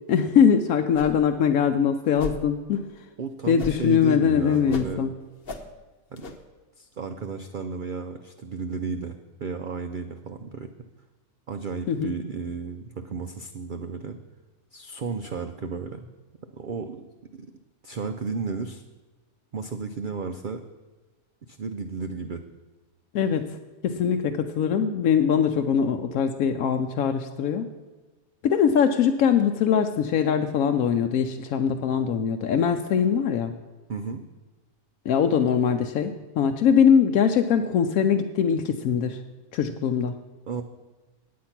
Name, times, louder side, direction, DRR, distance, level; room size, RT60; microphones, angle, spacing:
voice 1, 0.1-2.9 3.5-5.1 11.9-12.1 23.1-23.5 23.8-27.7 28.4-33.5 35.1-39.2 39.5-40.1, left 7 dB, 70° left, 5 dB, 1.0 m, -22 dB
sound 1, 0.9-1.3 1.6-1.7 2.1-2.4 3.6-4.0 4.3-5.0 5.4-5.7 6.2-6.4, left 2 dB, 45° left, 1.0 m, -37 dB
voice 2, 3.2-5.1 6.1-6.3 6.8-10.7 11.5-14.2 14.7-16.1 16.5-17.1 17.3-17.5 17.8-18.8 19.5-20.6 21.4-22.4 33.9-34.2 40.5-40.6, right 5 dB, 80° right, 7 dB, 0.4 m, -33 dB
9.5 x 8.4 x 5.8 m, 1.2 s
omnidirectional pair, 1.6 m